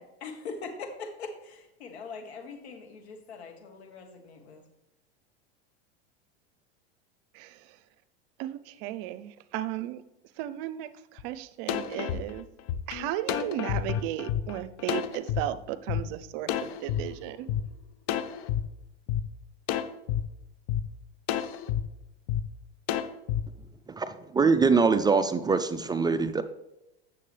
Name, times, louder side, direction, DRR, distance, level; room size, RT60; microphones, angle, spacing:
voice 1, 0.0-4.6, left 4 dB, 80° left, 4 dB, 1.6 m, -42 dB
voice 2, 8.4-10.0 10.4-12.5 12.9-17.5, right 13 dB, 60° right, 14 dB, 0.6 m, -35 dB
sound 1, 11.2-11.3 11.7-15.4 15.9-16.0 16.5-17.6 18.1-18.6 19.1-19.2 19.7-20.2 20.7-20.8 21.3-21.8 22.3-22.4 22.9-23.4, left 10 dB, 55° left, 0.7 m, -29 dB
voice 3, 24.0-26.4, right 4 dB, 15° right, 10 dB, 0.4 m, -23 dB
8.4 x 6.9 x 3.4 m, 0.91 s
hypercardioid pair, 100°, 31 cm